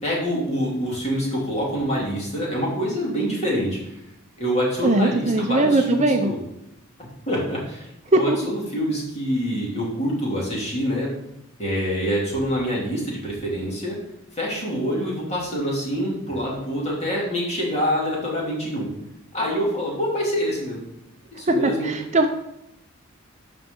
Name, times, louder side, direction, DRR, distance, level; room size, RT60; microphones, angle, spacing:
voice 1, 0.0-4.0 4.4-6.4 7.0-11.1 11.6-14.0 14.3-18.9 19.3-20.8 21.3-21.9, equal, 30° left, -4 dB, 2.7 m, -26 dB
voice 2, 4.8-6.3 8.1-8.5 21.5-22.3, right 2 dB, 30° right, 6 dB, 0.5 m, -20 dB
12.0 x 5.1 x 3.8 m, 0.83 s
head